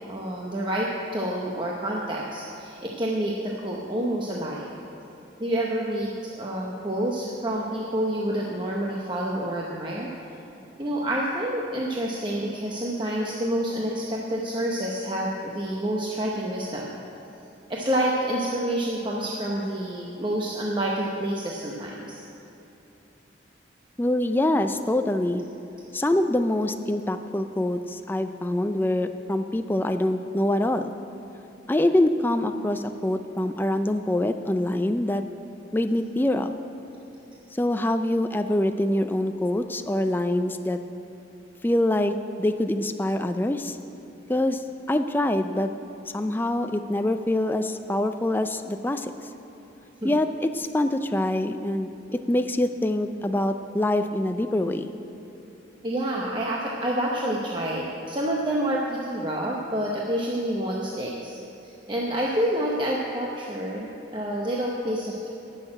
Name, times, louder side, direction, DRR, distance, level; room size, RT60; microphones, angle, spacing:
voice 1, 0.1-4.7 5.4-10.1 10.8-16.9 17.7-22.2 50.0-50.1 55.8-65.3, right 1 dB, 25° right, -3 dB, 0.8 m, -28 dB
voice 2, 24.0-25.4 25.9-30.9 31.7-35.2 35.7-36.5 37.5-40.8 41.6-42.1 42.4-43.8 44.3-44.6 44.9-45.7 46.1-49.1 50.0-54.9, left 1 dB, 10° left, 8 dB, 0.3 m, -25 dB
12.0 x 6.5 x 8.8 m, 2.9 s
head